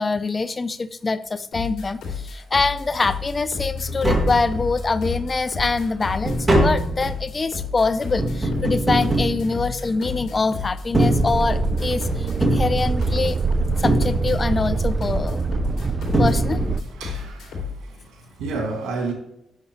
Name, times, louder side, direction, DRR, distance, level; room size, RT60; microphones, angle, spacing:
voice 1, 0.0-13.4 13.8-15.4 16.2-16.6, left 4 dB, 35° left, 0.5 m, -24 dB
sound 1, 1.5-17.8, left 5 dB, 75° left, 2.5 m, -32 dB
Tap, 3.9-5.0 5.4-10.2 10.8-11.9 12.4-13.4 13.8-14.7 15.7-15.8 16.1-17.0 17.2-17.3, right 1 dB, 20° right, 2.1 m, -23 dB
sound 2, 11.0-16.8, right 4 dB, 40° right, 0.4 m, -24 dB
voice 2, 16.8-19.1, right 3 dB, 85° right, 2.0 m, -31 dB
8.1 x 6.5 x 3.1 m
cardioid pair, 70°, 0 cm